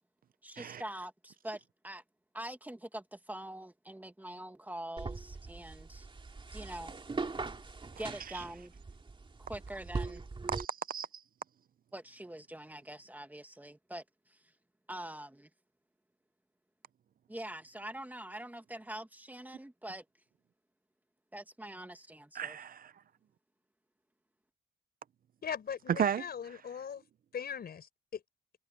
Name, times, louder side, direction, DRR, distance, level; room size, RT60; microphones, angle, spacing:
voice 1, 0.4-2.0 2.3-6.1 6.5-6.9 8.0-8.7 9.5-10.3 11.9-14.5 14.9-15.5 17.3-20.1 21.3-22.6, right 1 dB, 10° right, 2.2 m, -44 dB
sound 1, 5.0-10.6, right 3 dB, 25° right, 2.5 m, -41 dB
voice 2, 10.5-11.2 22.3-22.9 25.9-26.6, right 8 dB, 45° right, 0.6 m, -34 dB
voice 3, 25.4-27.0 27.3-28.2, left 7 dB, 50° left, 4.8 m, -40 dB
cardioid pair, 90°, 20 cm